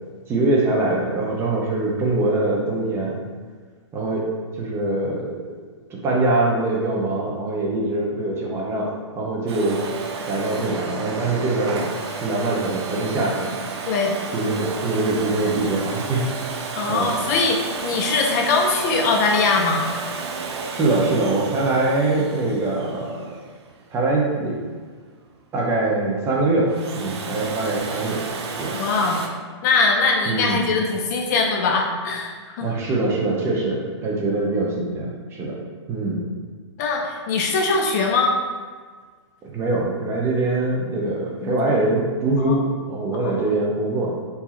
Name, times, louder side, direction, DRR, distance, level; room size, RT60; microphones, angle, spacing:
voice 1, 0.3-3.2 3.9-4.3 4.5-5.5 5.9-9.8 10.3-11.9 12.2-13.8 14.3-16.3 16.9-17.1 20.5-23.3 23.9-24.6 25.5-28.2 28.6-28.7 30.3-30.6 32.6-35.6 35.9-36.2 39.4-44.1, right 2 dB, 15° right, -2 dB, 0.6 m, -23 dB
Domestic sounds home sounds, 9.5-24.2 26.5-29.3, right 4 dB, 60° right, 0.7 m, -32 dB
voice 2, 13.8-14.2 16.8-17.6 17.8-19.9 28.8-29.2 29.6-32.7 36.8-38.3 41.4-41.6 42.4-42.6 43.2-43.4, left 4 dB, 35° left, 1 dB, 0.5 m, -21 dB
4.6 x 2.7 x 4.2 m, 1.5 s
hypercardioid pair, 150°, 15 cm